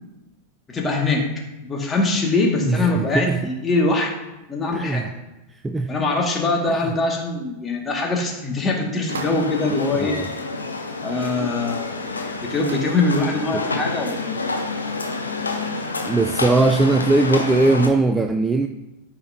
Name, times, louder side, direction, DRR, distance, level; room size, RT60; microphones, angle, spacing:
voice 1, 0.7-1.3 1.6-4.1 4.5-5.1 5.9-10.2 11.0-11.9 12.4-14.4, left 3 dB, 20° left, 0 dB, 2.0 m, -22 dB
voice 2, 2.7-3.4 4.7-5.1 5.6-5.9 9.9-10.3 13.5-13.6 16.1-18.7, right 2 dB, 10° right, 5 dB, 0.5 m, -19 dB
sound 1, 9.0-9.6 11.5-11.6 11.8-11.9 12.6-13.0, right 4 dB, 70° right, 0.7 m, -37 dB
sound 2, 9.1-17.9, left 3 dB, 75° left, 1.0 m, -28 dB
13.5 x 5.9 x 2.8 m, 1.0 s
figure-of-eight pair, 90°, 0 cm